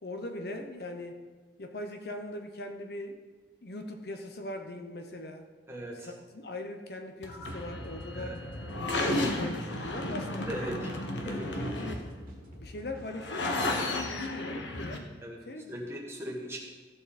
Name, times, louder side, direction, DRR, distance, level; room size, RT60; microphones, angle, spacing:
voice 1, 0.0-1.2 1.6-3.2 3.6-5.5 5.9-8.4 8.8-10.9 11.2-12.0 12.6-15.1 15.4-15.7, left 1 dB, 55° left, 5 dB, 0.8 m, -40 dB
voice 2, 5.7-6.1 8.1-8.4 10.5-10.9 11.2-11.7 15.2-15.4 15.7-16.6, equal, 15° right, -2 dB, 1.7 m, -38 dB
sound 1, 7.2-15.0, left 1 dB, 85° left, 1.2 m, -34 dB
sound 2, 7.8-13.1, equal, 45° right, 1.8 m, -52 dB
14.5 x 6.9 x 4.2 m, 1.4 s
head